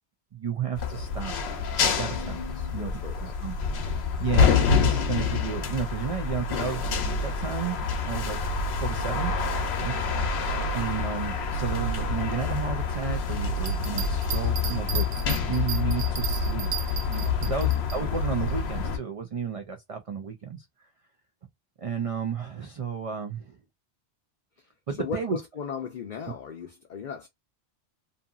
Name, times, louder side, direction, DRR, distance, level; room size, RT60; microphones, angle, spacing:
voice 1, 0.3-2.9 3.2-3.5 4.2-8.4 8.8-9.3 9.8-10.3 10.7-15.1 15.4-16.7 17.1-20.6 21.8-23.6 24.9-25.4 26.3-26.4, right 7 dB, 55° right, 0.4 m, -33 dB
sound 1, 0.8-19.0, left 5 dB, 80° left, 0.9 m, -27 dB
voice 2, 2.7-3.4 3.9-4.0 10.4-10.8 17.6-17.8 25.0-27.3, left 6 dB, 55° left, 0.6 m, -37 dB
Bell, 13.6-18.0 18.5-18.6, right 8 dB, 80° right, 1.0 m, -35 dB
2.7 x 2.6 x 2.3 m
omnidirectional pair, 1.1 m